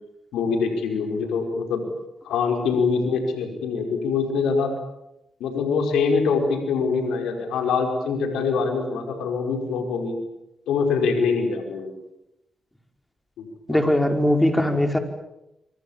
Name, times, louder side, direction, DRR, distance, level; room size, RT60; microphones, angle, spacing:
voice 1, 0.3-1.8 2.2-4.7 5.4-10.2 10.7-11.9 13.4-14.0, left 5 dB, 80° left, 4 dB, 5.3 m, -24 dB
voice 2, 13.7-15.0, left 1 dB, 5° left, 5 dB, 5.7 m, -20 dB
29.0 x 25.0 x 7.4 m, 0.88 s
hypercardioid pair, 40°, 0 cm